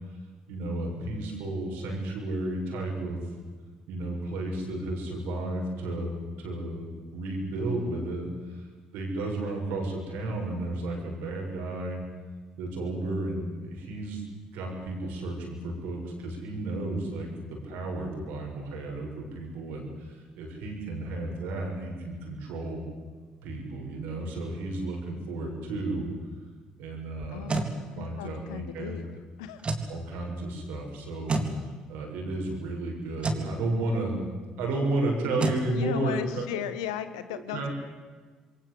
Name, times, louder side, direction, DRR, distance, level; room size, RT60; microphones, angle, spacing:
voice 1, 0.5-3.2 3.9-12.0 12.6-14.2 14.5-22.8 23.4-26.1 26.8-27.5 28.0-29.0 29.9-31.4 31.9-34.2 34.6-36.6 37.3-37.7, right 2 dB, 70° right, 1 dB, 7.3 m, -33 dB
sound 1, 27.2-27.7 29.6-29.9 31.3-31.5 33.2-33.5 35.4-35.6, right 3 dB, 35° right, 3.8 m, -28 dB
voice 2, 27.3-29.0 29.4-29.6 35.7-37.7, left 10 dB, 80° left, 12 dB, 1.6 m, -36 dB
28.0 x 23.0 x 8.2 m, 1.4 s
hypercardioid pair, 50°, 3 cm